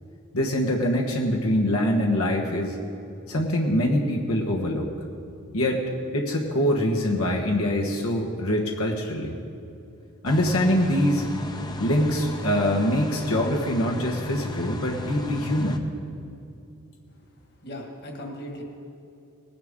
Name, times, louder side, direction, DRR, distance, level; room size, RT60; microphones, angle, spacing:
voice 1, 0.3-2.8 3.3-4.9 5.5-5.8 6.1-9.4 10.2-11.3 11.8-15.8, equal, 85° left, -1 dB, 1.2 m, -24 dB
sound 1, 10.2-15.8, left 2 dB, 20° left, 0.6 m, -35 dB
voice 2, 17.6-18.6, equal, 50° left, 1 dB, 1.8 m, -37 dB
19.5 x 10.5 x 3.7 m, 2.7 s
head